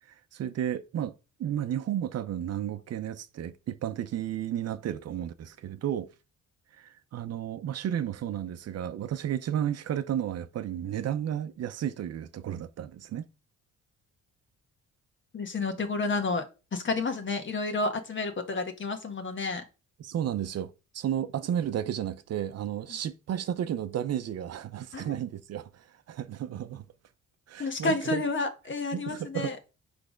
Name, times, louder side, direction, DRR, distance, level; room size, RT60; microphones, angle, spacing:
voice 1, 0.1-1.1 1.4-6.1 6.7-13.3 20.0-26.9 27.5-28.2 28.9-29.5, right 10 dB, 55° right, 0.6 m, -33 dB
voice 2, 15.3-16.4 16.7-19.6 24.9-25.1 27.6-29.6, left 3 dB, 40° left, 1.5 m, -30 dB
6.1 x 3.4 x 5.0 m
cardioid pair, 90°, 30 cm